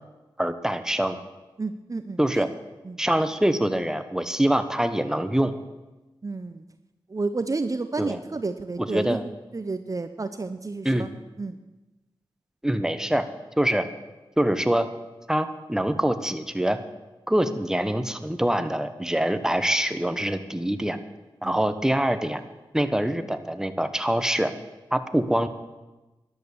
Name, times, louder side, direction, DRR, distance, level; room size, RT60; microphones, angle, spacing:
voice 1, 0.4-1.2 2.2-2.5 3.0-5.5 8.0-8.2 8.8-9.2 10.8-11.1 12.6-13.3 13.6-13.9 14.4-14.9 15.3-16.8 17.3-21.0 21.4-22.4 22.7-24.5 24.9-25.5, right 1 dB, 5° right, 10 dB, 1.2 m, -24 dB
voice 2, 1.6-2.5 2.8-3.0 6.2-6.6 7.1-11.1 11.4-11.6 21.4-21.6, right 3 dB, 40° right, 10 dB, 0.8 m, -31 dB
13.0 x 11.0 x 7.1 m, 1.1 s
cardioid pair, 50°, 9 cm